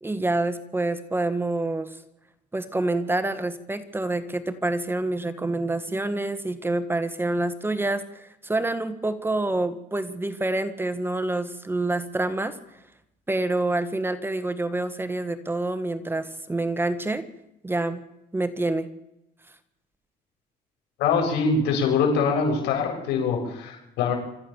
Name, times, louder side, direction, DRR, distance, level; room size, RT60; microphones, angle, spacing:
voice 1, 0.0-2.0 2.5-12.6 13.3-17.2 17.6-18.0 18.3-18.9, right 2 dB, 15° right, 11 dB, 1.6 m, -27 dB
voice 2, 21.0-24.1, left 5 dB, 85° left, 1 dB, 7.7 m, -23 dB
26.5 x 14.0 x 7.2 m, 0.85 s
cardioid pair, 110°, 17 cm